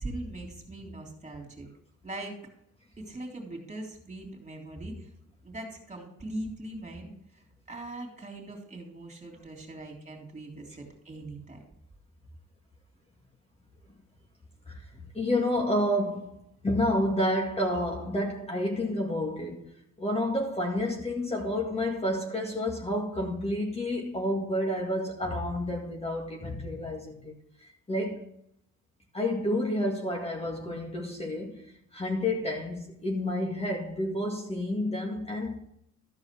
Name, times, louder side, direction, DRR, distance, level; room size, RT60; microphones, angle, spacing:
voice 1, 0.0-1.7 2.0-2.4 3.0-5.1 5.4-11.6, right 1 dB, 25° right, 3.4 m, -41 dB
voice 2, 15.1-19.7 20.0-27.3 27.6-28.3 29.1-35.6, left 1 dB, 20° left, 2.0 m, -30 dB
13.5 x 4.8 x 6.1 m
cardioid pair, 90°, 30 cm